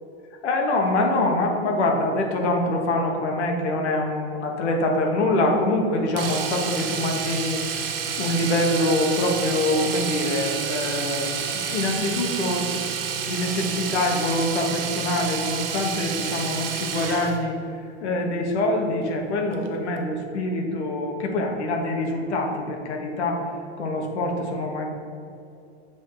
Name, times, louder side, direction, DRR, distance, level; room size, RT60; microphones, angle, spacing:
voice 1, 0.4-12.7 13.3-17.6 18.0-23.4 23.8-24.9, left 1 dB, 85° left, 1 dB, 1.4 m, -25 dB
Domestic sounds home sounds, 6.2-17.4 19.5-19.7 20.0-20.1, right 7 dB, 55° right, 1.0 m, -29 dB
7.3 x 3.6 x 4.7 m, 2.6 s
supercardioid pair, 165°, 33 cm